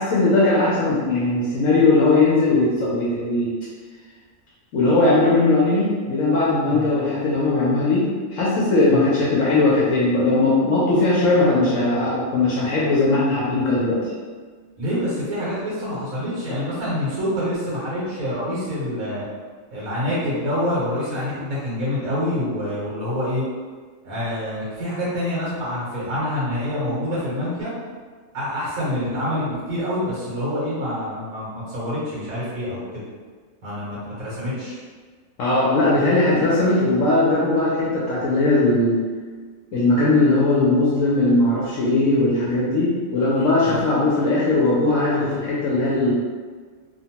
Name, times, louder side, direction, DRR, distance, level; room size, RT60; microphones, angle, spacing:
voice 1, 0.0-3.5 4.7-14.1 35.4-39.0 39.7-46.1, left 2 dB, 75° left, -7 dB, 1.0 m, -19 dB
voice 2, 14.8-19.2 19.7-23.4 24.0-27.7 28.3-32.8 33.6-34.8 43.6-43.8, left 1 dB, 90° right, -8 dB, 1.4 m, -26 dB
3.0 x 2.1 x 2.8 m, 1.5 s
omnidirectional pair, 1.4 m